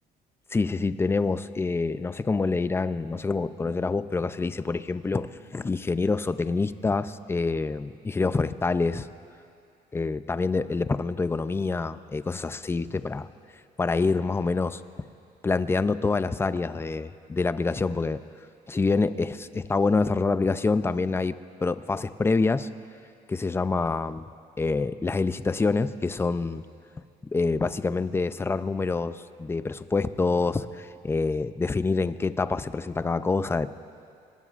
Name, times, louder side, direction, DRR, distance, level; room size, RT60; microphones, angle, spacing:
voice 1, 0.5-9.1 9.9-13.3 13.8-14.8 15.4-18.2 18.7-22.7 23.3-24.3 24.6-26.6 27.2-33.7, left 3 dB, 15° left, 13 dB, 0.5 m, -26 dB
26.0 x 19.5 x 2.5 m, 2.5 s
cardioid pair, 110°, 17 cm